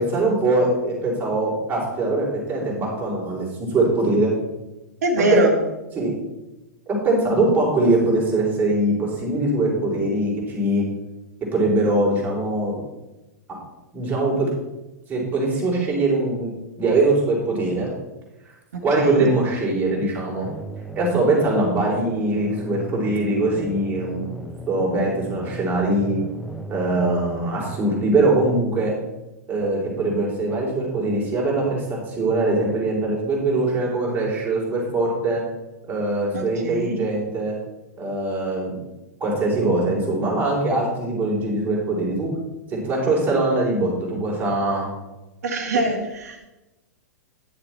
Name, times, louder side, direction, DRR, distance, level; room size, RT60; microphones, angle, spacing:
voice 1, 0.0-4.3 5.2-5.4 6.0-6.1 6.9-10.8 11.5-12.8 13.5-13.6 13.9-14.5 15.1-16.5 16.8-17.9 18.8-20.5 20.9-24.3 24.7-26.2 26.7-28.9 29.5-35.4 35.8-37.5 38.0-38.7 39.2-42.3 42.7-44.9, right 2 dB, 20° right, -4 dB, 3.9 m, -22 dB
voice 2, 5.0-5.5 18.7-19.3 36.3-37.0 45.4-46.4, right 2 dB, 65° right, 2 dB, 1.6 m, -23 dB
sound 1, 20.4-27.9, right 1 dB, ahead, 0.7 m, -37 dB
10.5 x 6.9 x 4.4 m, 1.0 s
figure-of-eight pair, 105°, 9 cm